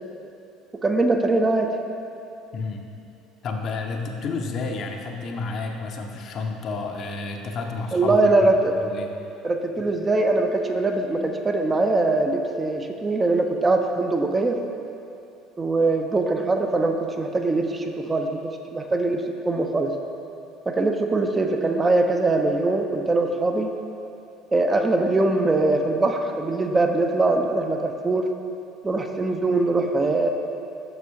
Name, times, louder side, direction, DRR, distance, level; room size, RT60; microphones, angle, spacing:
voice 1, 0.8-1.7 7.9-8.7 9.4-14.6 15.6-19.9 20.7-23.7 24.5-28.3 28.8-30.3, right 2 dB, 20° right, 4 dB, 0.4 m, -22 dB
voice 2, 2.5-2.8 3.4-8.2 8.7-9.1 9.8-9.9, left 4 dB, 45° left, 3 dB, 0.5 m, -30 dB
6.9 x 6.1 x 2.7 m, 2.7 s
figure-of-eight pair, 60°, 0 cm